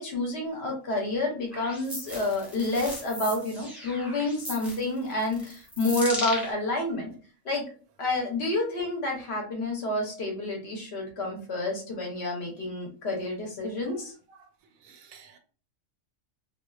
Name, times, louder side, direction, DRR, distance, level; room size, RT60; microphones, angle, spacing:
voice 1, 0.0-7.1 7.4-7.6 8.0-14.1, left 2 dB, 60° left, 0 dB, 0.9 m, -29 dB
sound 1, 1.5-6.5, equal, ahead, 0.5 m, -37 dB
voice 2, 14.8-15.4, right 6 dB, 85° right, 4 dB, 1.0 m, -52 dB
2.3 x 2.3 x 2.2 m, 0.39 s
omnidirectional pair, 1.4 m